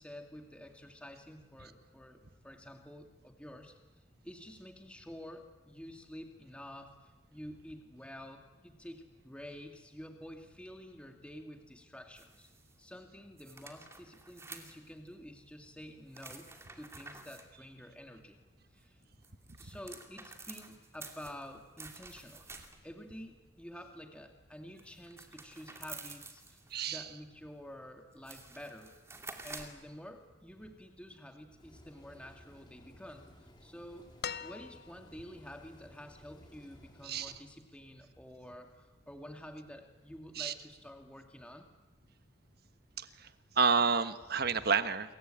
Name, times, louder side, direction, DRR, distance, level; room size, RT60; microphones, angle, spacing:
voice 1, 0.0-3.7 4.2-12.5 12.8-18.4 18.7-19.0 19.6-22.5 22.8-28.9 29.4-34.1 34.4-41.7, equal, 5° left, 4 dB, 2.1 m, -49 dB
sound 1, 12.2-12.8 13.4-15.1 16.1-17.5 19.0-23.0 24.8-26.8 27.7-27.8 28.1-29.8, right 3 dB, 15° right, 2.5 m, -50 dB
voice 2, 26.7-27.0 37.0-37.3 40.4-40.5 43.0-43.1 43.6-45.1, right 5 dB, 50° right, 11 dB, 1.3 m, -29 dB
sound 2, 31.6-37.4, equal, 25° left, 4.6 m, -58 dB
sound 3, 34.2-35.2 36.7-36.8, left 7 dB, 50° left, 0.9 m, -42 dB
28.5 x 23.0 x 9.0 m, 1.2 s
head